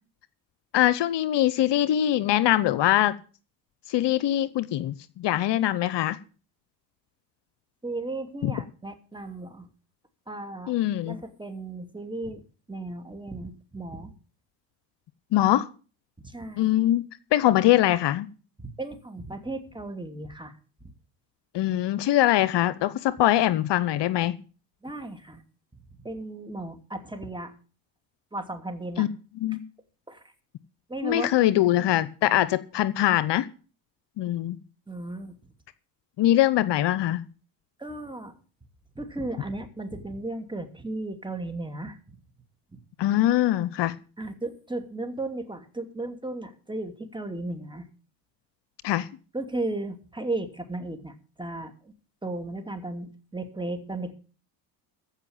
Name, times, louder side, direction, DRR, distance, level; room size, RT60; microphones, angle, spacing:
voice 1, 0.7-3.2 3.9-6.2 8.4-8.5 10.7-11.2 15.3-15.7 16.6-17.0 17.3-18.3 21.5-24.4 29.0-29.1 29.4-29.6 31.0-33.5 34.2-34.6 36.2-37.2 43.0-44.0 48.8-49.1, left 13 dB, 55° left, 16 dB, 0.9 m, -22 dB
voice 2, 7.8-9.7 10.3-10.8 11.1-12.4 12.7-14.1 16.2-16.7 18.6-20.5 20.8-20.9 24.8-25.4 25.7-27.5 28.3-29.1 30.1-30.2 30.9-31.9 32.3-32.5 34.9-35.4 37.8-38.4 38.9-42.2 44.2-47.9 49.3-51.9 52.2-54.1, right 2 dB, 10° right, 7 dB, 2.7 m, -35 dB
15.0 x 5.6 x 8.9 m, 0.38 s
supercardioid pair, 70°, 50 cm